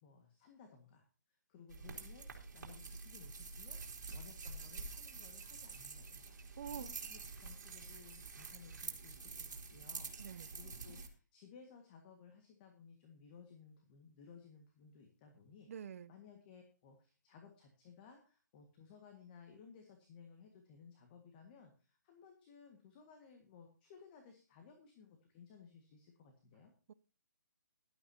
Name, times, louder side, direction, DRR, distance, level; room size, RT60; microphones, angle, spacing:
voice 1, 0.0-15.7 16.1-26.7, left 6 dB, 30° left, 1.8 m, -59 dB
sound 1, 1.7-11.1, right 4 dB, 70° right, 3.2 m, -48 dB
voice 2, 6.6-6.9 10.2-10.5 15.7-16.1 26.9-27.0, right 8 dB, 50° right, 0.6 m, -46 dB
15.0 x 12.0 x 2.9 m
hypercardioid pair, 155°, 10 cm